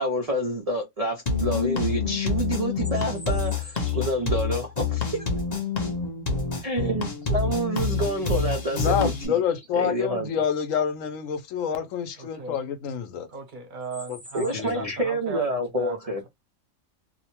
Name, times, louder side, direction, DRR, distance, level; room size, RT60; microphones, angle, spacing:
voice 1, 0.0-5.2 6.6-9.4 9.7-10.3 14.3-16.2, right 1 dB, 80° right, 0.3 m, -28 dB
sound 1, 1.3-9.3, left 5 dB, 40° left, 0.6 m, -27 dB
sound 2, 2.6-4.4 8.9-9.0 9.5-9.9 11.9-12.0 12.4-12.6 13.8-15.2, left 1 dB, 5° left, 0.8 m, -47 dB
voice 2, 8.7-13.3 14.1-14.2 14.5-14.9, left 8 dB, 75° left, 0.9 m, -27 dB
voice 3, 12.2-12.6 13.3-16.0, right 4 dB, 50° right, 0.7 m, -37 dB
2.7 x 2.1 x 2.8 m
omnidirectional pair, 1.4 m